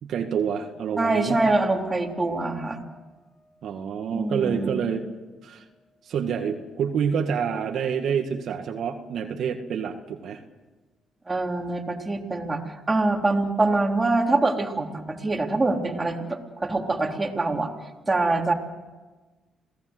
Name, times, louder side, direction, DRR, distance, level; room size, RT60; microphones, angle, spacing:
voice 1, 0.0-1.4 3.6-5.1 5.4-5.6 6.0-10.4, right 7 dB, 70° right, 4 dB, 2.0 m, -27 dB
voice 2, 1.0-2.8 4.1-4.7 11.3-17.7 18.1-18.5, right 2 dB, 20° right, 1 dB, 3.5 m, -24 dB
sound 1, 1.3-4.7 5.1-6.1, equal, 55° left, 4.1 m, -44 dB
28.0 x 18.0 x 8.0 m, 1.3 s
cardioid pair, 90°, 0 cm